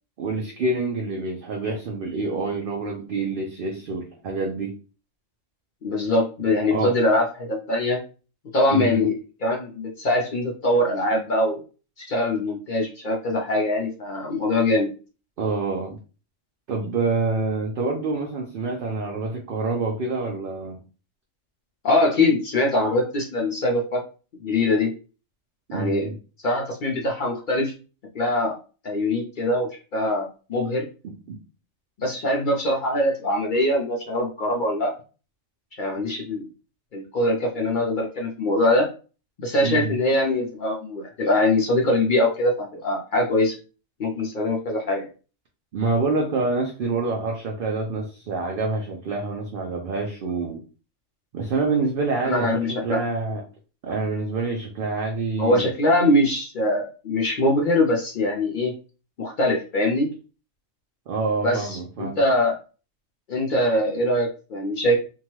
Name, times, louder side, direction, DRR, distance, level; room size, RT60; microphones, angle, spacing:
voice 1, 0.2-4.7 6.7-6.9 8.7-9.1 15.4-16.0 16.7-20.8 25.7-26.1 31.0-31.4 39.6-39.9 45.7-50.6 51.3-53.4 53.8-55.7 61.1-62.2, right 3 dB, 60° right, 0 dB, 0.6 m, -27 dB
voice 2, 5.8-8.0 8.5-11.6 12.0-14.9 21.8-24.0 24.4-24.9 25.7-26.1 26.4-27.7 28.1-28.6 28.8-30.9 32.0-34.9 35.8-36.4 36.9-38.9 39.4-43.6 44.0-45.1 52.2-53.0 55.4-58.7 59.2-60.1 61.4-62.5 63.3-65.0, left 1 dB, 60° left, 0 dB, 0.5 m, -23 dB
2.7 x 2.3 x 3.0 m, 0.35 s
omnidirectional pair, 1.3 m